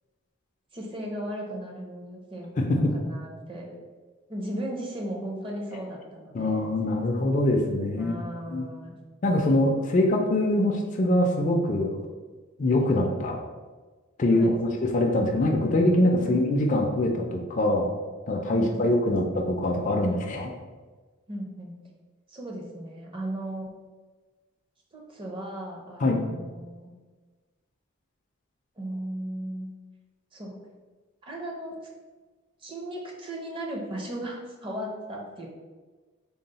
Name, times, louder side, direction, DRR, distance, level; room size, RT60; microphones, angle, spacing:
voice 1, 0.7-3.7 4.3-6.7 7.9-8.9 10.0-10.1 14.3-14.6 16.2-16.4 18.5-19.2 21.3-21.7 22.3-23.7 24.9-26.9 28.8-29.7 30.3-30.5 31.2-31.8 32.6-35.5, right 1 dB, 25° right, -1 dB, 0.5 m, -36 dB
voice 2, 2.6-2.9 6.3-8.1 8.5-8.7 9.2-12.0 12.6-13.4 14.2-17.9 18.3-20.5 26.0-26.2, left 1 dB, 35° left, 2 dB, 0.4 m, -23 dB
3.8 x 2.0 x 4.0 m, 1.3 s
head